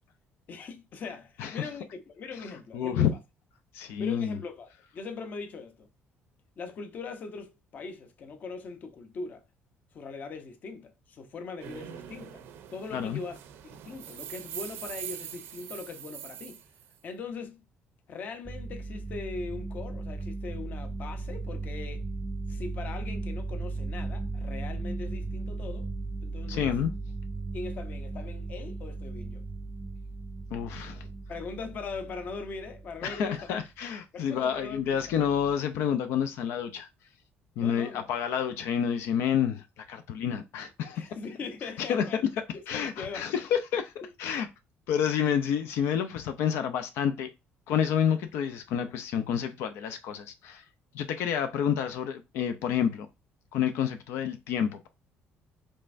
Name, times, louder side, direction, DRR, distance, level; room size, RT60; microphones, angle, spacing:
voice 1, 0.5-3.1 4.0-5.9 6.6-9.4 9.9-12.4 12.7-13.4 13.6-16.6 17.0-17.6 18.1-22.0 22.5-25.9 26.2-26.8 27.5-29.4 31.3-33.4 34.1-35.2 37.6-38.1 40.9-42.2 42.5-43.3 44.0-44.1, left 4 dB, 40° left, 0.7 m, -40 dB
voice 2, 1.4-1.7 2.7-3.1 3.7-4.4 12.9-13.2 26.5-26.9 30.5-31.1 33.0-36.9 37.6-41.1 41.8-42.2 42.7-43.9 44.2-44.5 44.9-47.3 47.7-50.6 50.9-53.1 53.5-54.9, left 8 dB, 90° left, 0.6 m, -29 dB
sound 1, 11.6-17.0, right 10 dB, 80° right, 0.6 m, -43 dB
sound 2, 18.5-33.5 34.7-35.6, right 3 dB, 10° right, 0.3 m, -37 dB
5.4 x 3.3 x 2.6 m
cardioid pair, 160°, 4 cm